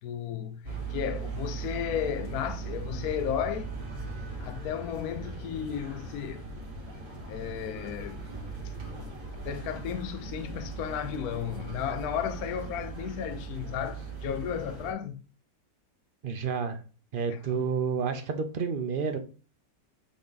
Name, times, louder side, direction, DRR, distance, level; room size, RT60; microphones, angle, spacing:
voice 1, 0.0-3.7 4.4-6.5 7.3-8.3 8.6-8.7 9.0-9.1 9.4-15.2 17.3-17.7, left 9 dB, 70° left, 1.0 m, -34 dB
sound 1, 0.6-14.9, right 4 dB, 50° right, 2.2 m, -39 dB
voice 2, 16.2-16.8 17.1-19.2, right 6 dB, 80° right, 0.4 m, -30 dB
8.2 x 3.6 x 3.9 m
omnidirectional pair, 1.8 m